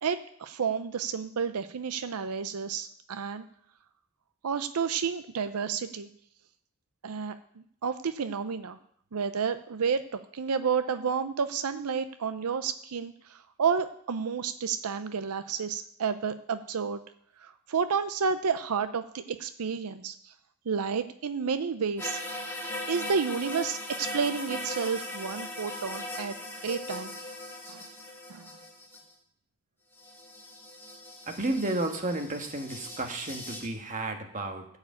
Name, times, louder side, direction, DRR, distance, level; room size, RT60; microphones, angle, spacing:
voice 1, 0.0-3.4 4.4-6.1 7.0-8.8 9.1-17.0 17.4-20.3 20.7-22.2 22.9-26.3 26.6-27.2 27.7-27.9 28.3-28.5, right 6 dB, 90° right, 10 dB, 0.6 m, -31 dB
sound 1, 22.0-29.1 30.0-33.7, left 1 dB, 10° left, 2.1 m, -39 dB
voice 2, 31.3-34.7, right 2 dB, 35° right, 4 dB, 1.4 m, -32 dB
14.0 x 4.9 x 8.6 m, 0.67 s
head